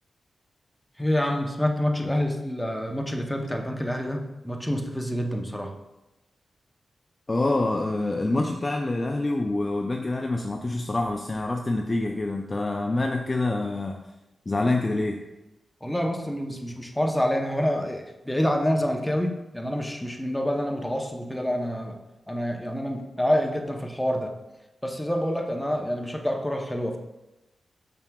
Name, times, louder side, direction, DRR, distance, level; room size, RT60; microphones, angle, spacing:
voice 1, 1.0-5.7 15.8-22.0 22.3-24.4 24.8-27.0, equal, 5° left, 2 dB, 0.8 m, -27 dB
voice 2, 7.3-14.0 14.5-15.2, left 2 dB, 30° left, 2 dB, 0.4 m, -26 dB
7.1 x 5.8 x 2.3 m, 1.0 s
wide cardioid pair, 90°, 0 cm